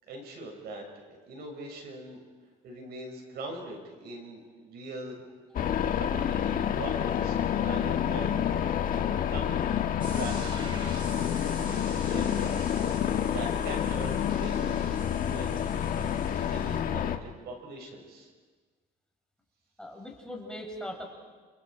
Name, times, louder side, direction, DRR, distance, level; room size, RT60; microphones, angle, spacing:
voice 1, 0.0-2.2 2.6-5.2 5.6-9.7 10.1-10.9 11.4-12.8 13.2-15.6 15.9-18.3, right 2 dB, 70° right, 2 dB, 7.0 m, -42 dB
sound 1, 5.5-17.2, left 9 dB, 55° left, 1.7 m, -28 dB
sound 2, 10.0-16.8, right 1 dB, 30° right, 6.2 m, -45 dB
voice 2, 19.8-21.1, left 1 dB, 5° left, 0 dB, 5.4 m, -41 dB
30.0 x 29.0 x 5.1 m, 1.4 s
cardioid pair, 110°, 17 cm